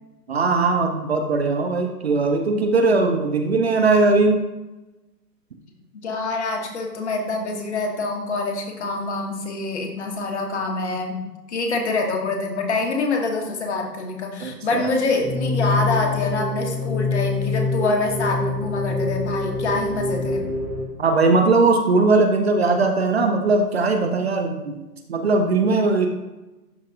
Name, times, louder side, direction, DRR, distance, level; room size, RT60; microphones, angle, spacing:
voice 1, 0.3-4.4 14.4-14.9 21.0-24.8 25.1-26.1, right 3 dB, 40° right, 5 dB, 0.6 m, -19 dB
voice 2, 5.9-20.4, left 3 dB, 45° left, 2 dB, 1.2 m, -25 dB
sound 1, 15.2-20.8, left 3 dB, 5° right, 0.8 m, -25 dB
11.5 x 3.9 x 2.5 m, 1.1 s
figure-of-eight pair, 140°, 49 cm